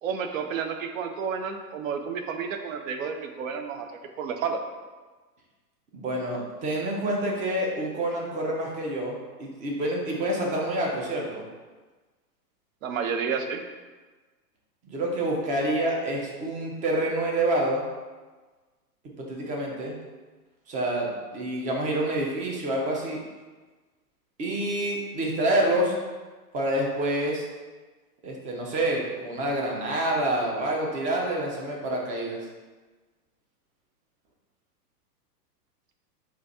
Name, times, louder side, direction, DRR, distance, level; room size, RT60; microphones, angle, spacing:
voice 1, 0.0-3.9 4.2-4.6 12.8-13.6, right 6 dB, 55° right, 6 dB, 0.6 m, -30 dB
voice 2, 5.9-11.4 14.8-17.8 19.2-20.0 20.7-23.2 24.4-26.0 26.5-27.5 28.2-32.4, right 1 dB, 15° right, -1 dB, 0.5 m, -27 dB
4.0 x 2.4 x 4.1 m, 1.3 s
hypercardioid pair, 110°, 48 cm